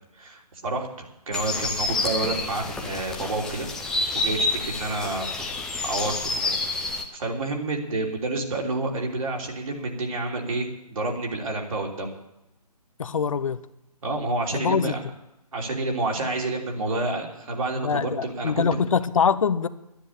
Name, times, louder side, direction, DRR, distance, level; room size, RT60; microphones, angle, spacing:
voice 1, 0.2-3.7 4.1-5.3 5.8-6.5 7.1-12.1 14.0-15.0 15.5-18.8, right 2 dB, 55° right, 0 dB, 3.4 m, -29 dB
sound 1, 1.3-7.0, left 2 dB, 5° left, 0.6 m, -28 dB
voice 2, 13.0-13.6 14.5-14.9 17.8-19.7, left 6 dB, 55° left, 13 dB, 0.7 m, -23 dB
11.5 x 10.0 x 8.3 m, 0.89 s
figure-of-eight pair, 150°, 20 cm